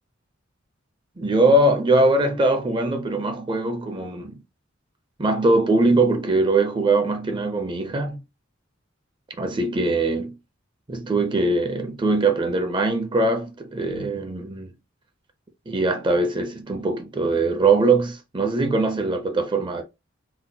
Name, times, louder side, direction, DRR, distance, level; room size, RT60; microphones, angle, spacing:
voice 1, 1.2-4.4 5.2-8.2 9.4-10.4 10.9-14.7 15.7-19.8, right 2 dB, 25° right, 0.4 m, -21 dB
3.7 x 2.1 x 2.7 m
head